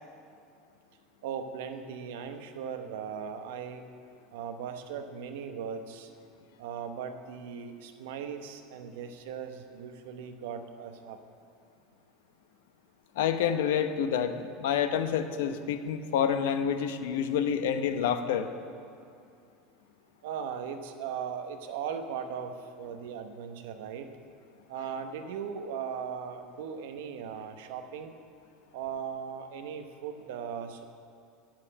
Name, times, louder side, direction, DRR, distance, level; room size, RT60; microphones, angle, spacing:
voice 1, 1.2-3.8 4.3-6.1 6.6-11.2 20.2-24.1 24.7-28.2 28.7-30.8, right 7 dB, 80° right, 7 dB, 0.9 m, -38 dB
voice 2, 13.2-18.5, left 8 dB, 85° left, 9 dB, 0.7 m, -28 dB
8.8 x 7.4 x 8.5 m, 2.4 s
supercardioid pair, 155°, 0 cm